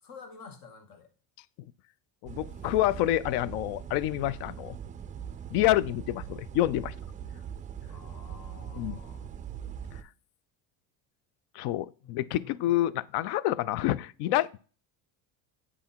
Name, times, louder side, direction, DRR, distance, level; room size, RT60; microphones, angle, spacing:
voice 1, 0.0-1.1 7.9-9.4 12.0-12.9, left 5 dB, 55° left, 1.6 m, -50 dB
voice 2, 2.2-4.8 5.5-6.9 8.7-8.9 11.5-14.6, left 14 dB, 70° left, 0.5 m, -28 dB
sound 1, 2.3-10.0, right 8 dB, 20° right, 0.4 m, -41 dB
8.3 x 3.6 x 4.3 m
cardioid pair, 120°, 41 cm